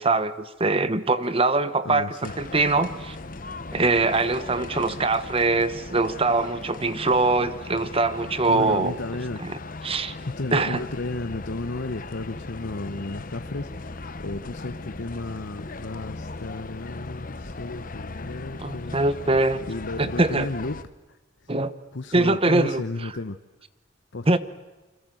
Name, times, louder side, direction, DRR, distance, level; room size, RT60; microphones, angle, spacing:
voice 1, 0.0-3.2 3.7-8.9 9.4-9.6 9.8-10.1 10.5-10.8 18.6-19.6 20.0-20.5 21.5-21.7 22.1-22.8 24.3-24.4, right 3 dB, 30° right, 13 dB, 1.1 m, -23 dB
voice 2, 1.8-2.3 8.5-9.4 10.2-19.0 19.7-20.8 21.4-21.5 21.9-23.4 24.1-24.3, left 2 dB, 70° left, 9 dB, 1.0 m, -33 dB
sound 1, 2.2-20.8, left 3 dB, 45° left, 1.1 m, -38 dB
29.0 x 26.0 x 7.8 m, 1.2 s
head